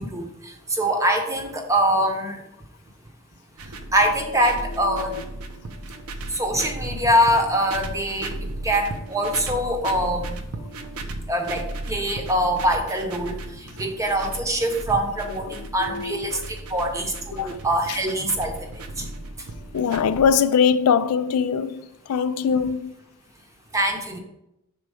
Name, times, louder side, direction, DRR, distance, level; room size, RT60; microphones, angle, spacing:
voice 1, 0.0-2.4 3.9-5.2 6.3-8.3 8.6-10.4 11.3-11.6 11.9-13.4 13.8-16.4 16.7-18.5 19.0-19.1 23.7-24.2, equal, 15° right, 0.8 m, -23 dB
sound 1, 3.6-20.3, right 2 dB, 85° right, 0.7 m, -36 dB
voice 2, 4.7-5.2 9.6-9.8 15.3-15.5 15.8-16.4 17.3-17.6 17.9-18.0 19.7-22.9, left 6 dB, 85° left, 0.4 m, -23 dB
6.3 x 4.1 x 4.9 m
head